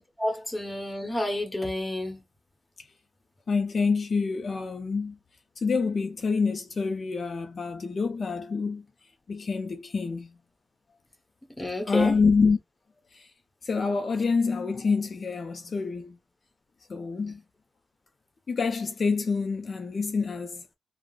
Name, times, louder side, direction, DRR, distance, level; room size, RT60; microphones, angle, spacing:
voice 1, 0.2-2.2 11.6-12.1, left 1 dB, 15° left, 1.1 m, -29 dB
voice 2, 3.5-5.2 5.6-8.8 9.3-10.3 11.9-12.6 13.1-13.3 13.6-16.2 16.9-17.4 18.5-20.7, left 4 dB, 55° left, 0.5 m, -27 dB
3.6 x 2.0 x 2.4 m
wide cardioid pair, 95°, 0 cm